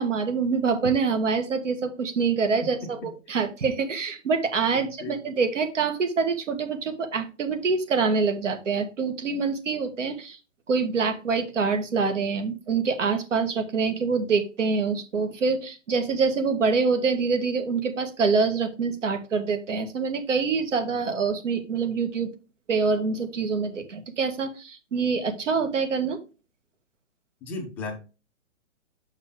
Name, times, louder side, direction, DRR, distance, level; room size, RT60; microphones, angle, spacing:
voice 1, 0.0-10.4 10.7-22.3 22.7-26.2, right 5 dB, 75° right, 7 dB, 1.8 m, -25 dB
voice 2, 4.7-5.2 27.4-28.0, left 3 dB, 5° left, -1 dB, 0.4 m, -35 dB
6.3 x 5.6 x 3.7 m, 0.30 s
hypercardioid pair, 150°, 37 cm